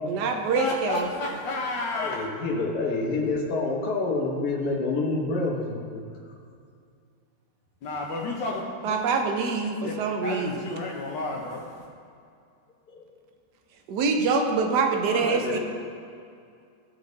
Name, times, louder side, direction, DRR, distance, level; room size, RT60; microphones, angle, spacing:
voice 1, 0.0-1.1 8.8-10.7 13.9-15.6, right 4 dB, 70° right, 4 dB, 1.4 m, -25 dB
voice 2, 0.5-2.2 7.8-9.0 9.8-10.0 10.2-11.8, left 2 dB, 90° left, -2 dB, 1.6 m, -31 dB
voice 3, 1.9-6.0 12.9-13.1 15.1-15.6, left 3 dB, 60° left, -2 dB, 1.7 m, -28 dB
15.0 x 5.2 x 4.0 m, 2.4 s
omnidirectional pair, 1.9 m